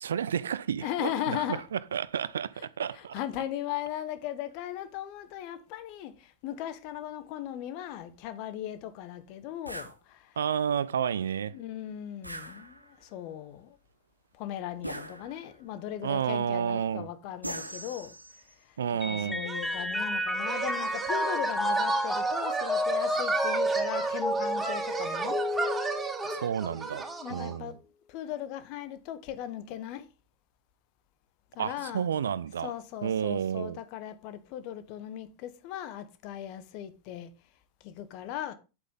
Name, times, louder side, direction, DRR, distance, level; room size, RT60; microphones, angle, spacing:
voice 1, 0.0-1.4 1.7-3.1 10.4-11.6 16.0-17.1 18.8-19.4 26.3-27.7 31.6-32.7 33.0-33.8, right 8 dB, 65° right, 0.6 m, -31 dB
voice 2, 0.8-1.6 2.9-10.4 11.5-13.8 14.4-18.1 18.6-18.8 19.0-25.4 27.2-27.8 28.1-30.1 31.5-32.1 32.6-37.3 37.8-38.5, left 11 dB, 45° left, 1.3 m, -38 dB
sound 1, 9.7-10.0 12.2-13.1 14.8-15.6 17.4-18.5, right 1 dB, 85° right, 1.3 m, -40 dB
Mallet percussion, 19.0-26.7, equal, 5° left, 1.0 m, -31 dB
sound 2, 19.5-27.6, right 4 dB, 10° right, 3.4 m, -34 dB
9.4 x 8.3 x 3.8 m
figure-of-eight pair, 90°, 0 cm